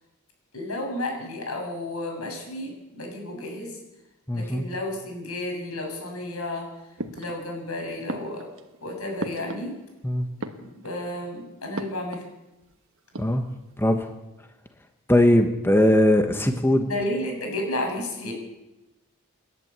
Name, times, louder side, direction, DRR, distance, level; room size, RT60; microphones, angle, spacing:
voice 1, 0.5-3.8 4.3-6.7 7.1-8.5 8.8-9.7 10.4-12.2 16.9-18.3, left 1 dB, 80° left, 2 dB, 7.0 m, -32 dB
voice 2, 4.3-4.6 10.0-10.3 13.2-13.4 13.8-14.0 15.1-16.9, left 1 dB, 10° left, 6 dB, 1.3 m, -20 dB
sound 1, 7.0-7.7 8.1-10.0 10.3-11.1 11.7-12.4 12.6-12.7 13.0-13.7, right 2 dB, 65° right, 1.5 m, -37 dB
28.5 x 11.0 x 8.3 m, 0.99 s
head